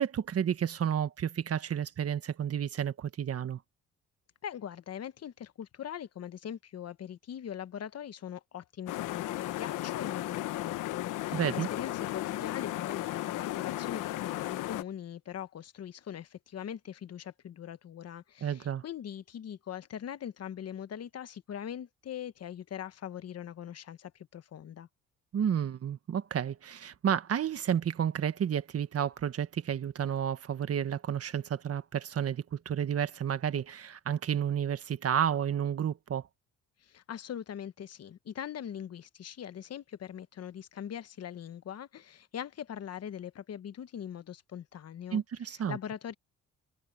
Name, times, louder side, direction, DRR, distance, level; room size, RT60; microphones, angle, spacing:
voice 1, 0.0-3.6 11.3-11.7 18.4-18.8 25.3-36.3 45.1-45.8, right 9 dB, 50° right, 1.5 m, -31 dB
voice 2, 4.4-24.9 36.8-46.1, left 9 dB, 55° left, 1.1 m, -42 dB
sound 1, 8.9-14.8, left 15 dB, 90° left, 1.0 m, -35 dB
cardioid pair, 90°, 30 cm